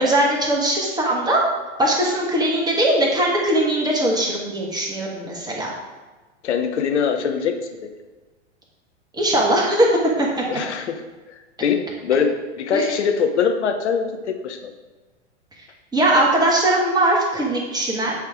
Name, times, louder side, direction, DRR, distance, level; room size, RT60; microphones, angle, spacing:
voice 1, 0.0-1.4 1.8-5.7 9.1-9.9 10.2-10.4 12.7-12.9 15.9-18.1, right 1 dB, 10° right, -3 dB, 1.6 m, -20 dB
voice 2, 6.4-7.6 10.5-11.0 11.6-14.7, left 6 dB, 70° left, 5 dB, 0.9 m, -22 dB
8.2 x 3.4 x 4.5 m, 1.3 s
figure-of-eight pair, 100°, 36 cm